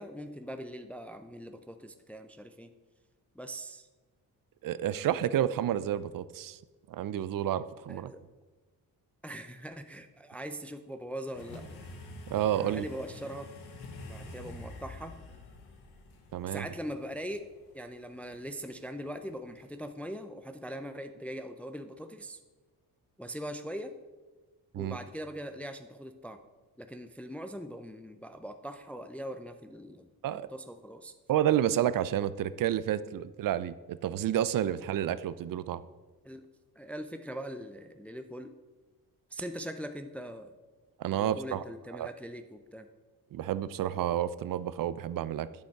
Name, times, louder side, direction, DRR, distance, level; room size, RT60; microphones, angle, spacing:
voice 1, 0.0-2.7 3.4-3.9 7.9-8.2 9.2-11.6 12.5-13.5 14.1-15.1 16.5-17.4 17.7-22.4 23.2-23.9 24.7-26.4 26.8-30.1 30.5-31.1 36.2-36.4 36.8-38.5 39.3-40.5 41.1-42.9, equal, 5° left, 8 dB, 0.5 m, -41 dB
voice 2, 4.6-6.6 6.9-8.1 12.3-12.9 16.3-16.6 24.7-25.0 30.2-30.5 31.3-35.8 41.0-41.6 41.9-42.1 43.3-45.5, right 11 dB, 60° right, 16 dB, 0.5 m, -30 dB
sound 1, 11.3-19.9, left 2 dB, 85° left, 1.5 m, -48 dB
9.1 x 7.3 x 4.6 m, 1.2 s
cardioid pair, 95°, 38 cm